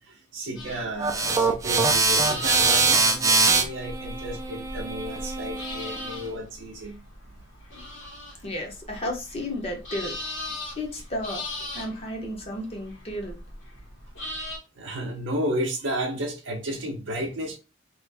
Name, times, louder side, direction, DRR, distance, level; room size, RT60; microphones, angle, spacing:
voice 1, 0.0-7.0 7.3-7.4 14.7-17.6, right 1 dB, 65° right, 0.6 m, -32 dB
sound 1, 0.6-14.6, left 2 dB, 75° left, 1.6 m, -39 dB
sound 2, 1.0-6.2, right 4 dB, 15° right, 0.3 m, -23 dB
voice 2, 8.4-10.1 10.8-13.4, left 1 dB, 30° left, 0.8 m, -33 dB
3.0 x 2.5 x 3.3 m
head